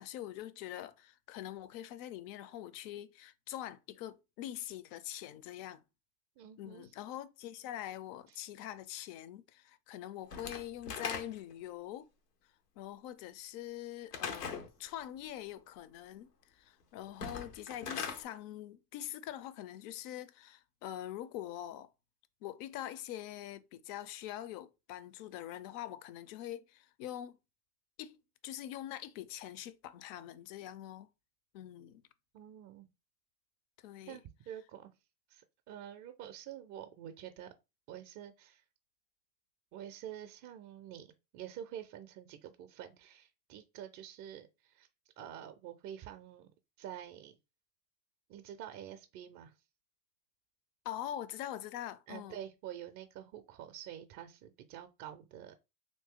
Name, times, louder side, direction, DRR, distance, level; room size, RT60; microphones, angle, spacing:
voice 1, 0.0-5.8 6.6-12.1 12.8-21.9 22.4-27.4 28.0-28.2 28.4-31.1 31.5-32.0 33.8-34.2 50.8-52.4, left 12 dB, 50° left, 0.5 m, -44 dB
voice 2, 6.4-6.9 8.3-8.4 32.3-32.9 34.1-34.9 35.3-37.5 37.9-38.6 39.7-44.9 45.2-46.5 46.8-47.4 48.3-49.5 52.1-55.6, right 10 dB, 40° right, 0.5 m, -48 dB
Slam / Wood, 10.3-11.6 14.1-14.7 17.1-18.2, left 6 dB, 85° left, 0.9 m, -40 dB
2.8 x 2.7 x 3.6 m
hypercardioid pair, 85°, 46 cm